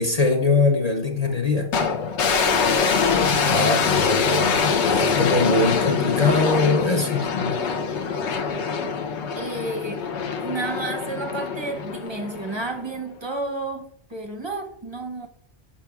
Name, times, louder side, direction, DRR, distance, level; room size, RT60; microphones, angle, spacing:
voice 1, 0.0-1.7 3.4-7.6, left 3 dB, 40° left, 0.7 m, -22 dB
sound 1, 1.7-12.9, left 5 dB, 75° left, 1.0 m, -24 dB
voice 2, 2.3-2.7 9.4-10.1 10.4-15.3, right 2 dB, 30° right, 0.6 m, -31 dB
8.4 x 5.7 x 2.3 m
omnidirectional pair, 1.2 m